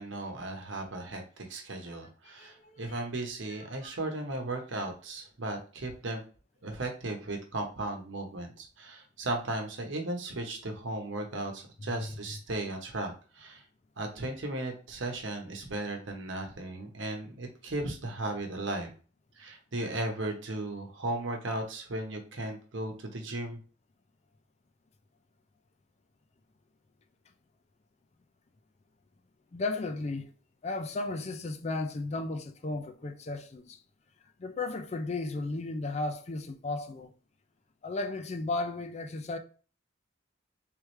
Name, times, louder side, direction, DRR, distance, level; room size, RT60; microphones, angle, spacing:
voice 1, 0.0-6.2 6.6-13.6 14.0-18.9 19.4-23.6, right 2 dB, 75° right, 1.0 m, -36 dB
voice 2, 2.4-3.0 3.8-4.0 11.8-12.1 29.5-30.3 30.6-33.8 34.4-37.1 37.8-39.4, left 2 dB, 35° left, 0.4 m, -35 dB
3.4 x 3.2 x 3.1 m
head